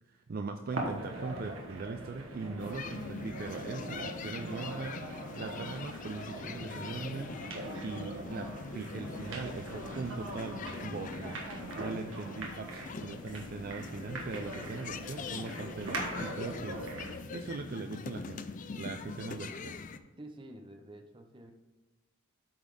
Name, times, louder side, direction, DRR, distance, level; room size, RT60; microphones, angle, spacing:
voice 1, 0.1-11.4 11.8-16.8 17.1-19.7, right 4 dB, 45° right, 6 dB, 0.4 m, -41 dB
sound 1, 0.7-17.2, right 2 dB, 70° right, 1.5 m, -42 dB
sound 2, 2.6-20.0, left 4 dB, 40° left, 0.4 m, -43 dB
voice 2, 19.4-19.9 20.2-21.5, right 1 dB, 25° right, 4 dB, 0.7 m, -50 dB
8.6 x 4.1 x 4.8 m, 1.2 s
head